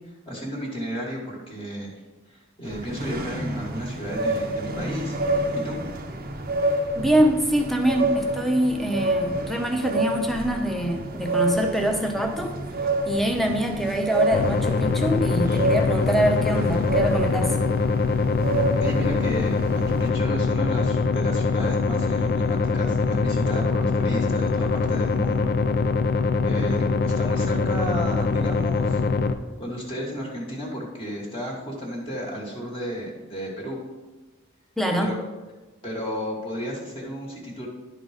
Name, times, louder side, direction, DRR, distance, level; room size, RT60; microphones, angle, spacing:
voice 1, 0.3-1.9 2.3-5.2 5.5-5.8 18.8-25.5 26.1-29.0 29.6-33.8 35.0-35.2 35.8-37.7, equal, 25° left, -3 dB, 1.4 m, -33 dB
sound 1, 2.6-20.1, right 1 dB, 45° right, 0.7 m, -28 dB
voice 2, 6.9-12.6 13.1-17.5 34.8-35.1, right 1 dB, ahead, 3 dB, 0.8 m, -24 dB
sound 2, 14.3-29.3, left 4 dB, 50° left, 0.4 m, -23 dB
10.5 x 4.0 x 4.9 m, 1.2 s
head